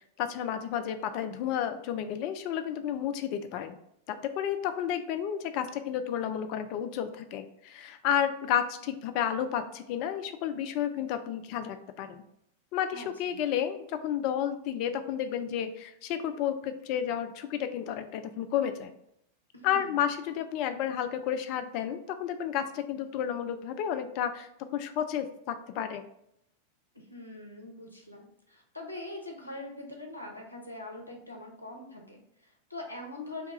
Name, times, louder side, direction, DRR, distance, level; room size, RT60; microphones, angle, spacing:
voice 1, 0.2-3.7 4.1-12.2 12.7-18.9 19.6-26.1, left 9 dB, 45° left, 8 dB, 0.3 m, -31 dB
voice 2, 12.9-13.4 19.5-20.0 26.9-33.5, left 2 dB, 85° left, 1 dB, 0.6 m, -43 dB
2.8 x 2.3 x 4.1 m, 0.75 s
figure-of-eight pair, 90°, 0 cm